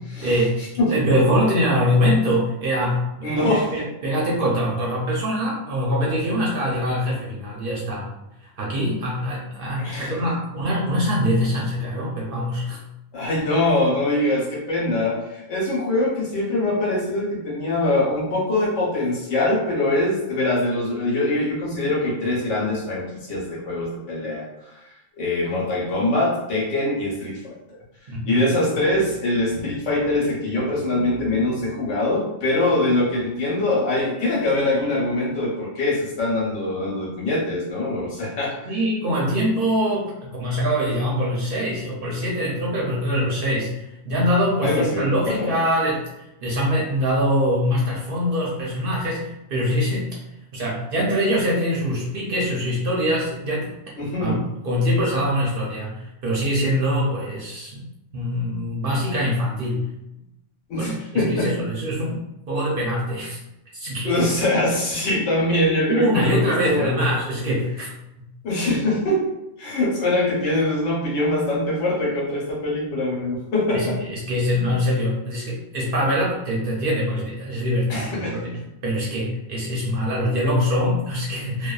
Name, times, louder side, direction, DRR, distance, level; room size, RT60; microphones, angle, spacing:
voice 1, 0.2-0.6 0.9-3.4 3.7-8.1 8.6-12.8 28.1-28.5 38.7-43.7 44.1-50.1 50.5-53.8 54.2-57.8 58.1-59.9 60.8-63.4 63.7-64.2 65.9-67.9 68.2-68.3 73.7-78.5 78.8-81.7, equal, 55° right, -4 dB, 0.7 m, -23 dB
voice 2, 3.2-3.7 9.8-10.1 13.1-24.7 25.2-27.6 28.2-38.5 44.6-45.5 54.0-54.4 60.7-61.5 64.1-67.0 68.4-69.2 69.6-74.0 77.9-78.6, left 1 dB, 75° left, -3 dB, 1.1 m, -23 dB
2.5 x 2.2 x 2.3 m, 0.88 s
omnidirectional pair, 1.3 m